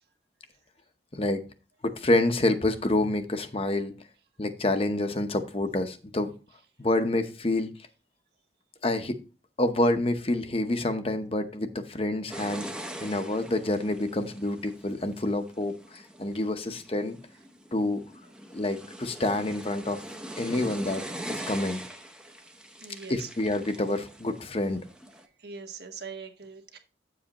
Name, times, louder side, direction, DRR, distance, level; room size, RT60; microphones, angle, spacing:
voice 1, 1.1-1.4 1.8-3.9 4.4-6.3 6.8-7.7 8.8-9.2 9.6-12.7 13.0-17.2 17.7-18.0 18.5-20.0 20.4-21.0 21.3-21.8 23.1-24.8, left 2 dB, 30° left, 0.9 m, -27 dB
sound 1, 12.3-25.3, right 1 dB, 5° right, 0.7 m, -42 dB
voice 2, 22.8-23.3 25.4-26.8, right 5 dB, 55° right, 1.4 m, -41 dB
9.5 x 7.5 x 2.9 m
head